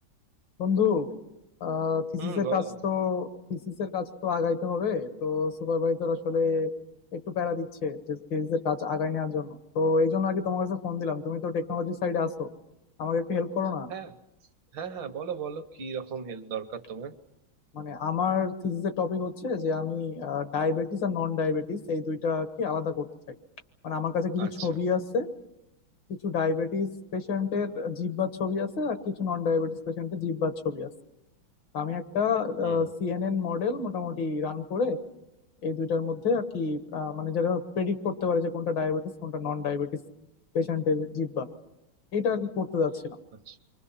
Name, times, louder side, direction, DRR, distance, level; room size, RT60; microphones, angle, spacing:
voice 1, 0.6-1.1 1.6-6.7 7.1-12.5 13.0-13.9 17.7-23.4 23.8-25.3 26.2-30.9 31.7-35.0 35.6-39.9 40.5-41.5 42.1-43.2, left 5 dB, 65° left, 8 dB, 2.0 m, -28 dB
voice 2, 2.2-2.8 13.9-14.1 14.7-17.2 24.4-24.7 32.6-32.9 43.5-43.6, right 7 dB, 70° right, 8 dB, 1.8 m, -36 dB
29.5 x 24.0 x 5.6 m, 0.89 s
omnidirectional pair, 2.2 m